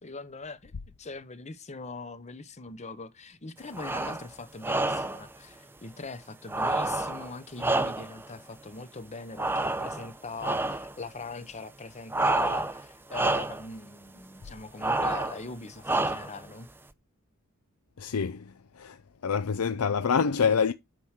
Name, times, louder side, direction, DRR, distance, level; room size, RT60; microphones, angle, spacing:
voice 1, 0.0-0.7 1.0-16.7, left 3 dB, 30° left, 0.9 m, -41 dB
sound 1, 3.7-4.3 4.6-5.2 6.5-8.3 9.4-10.1 10.4-10.9 12.1-12.8 13.1-13.7 14.8-15.4 15.8-16.4, right 2 dB, 10° right, 0.7 m, -28 dB
voice 2, 18.0-20.7, left 6 dB, 80° left, 0.6 m, -27 dB
9.2 x 5.9 x 4.8 m
head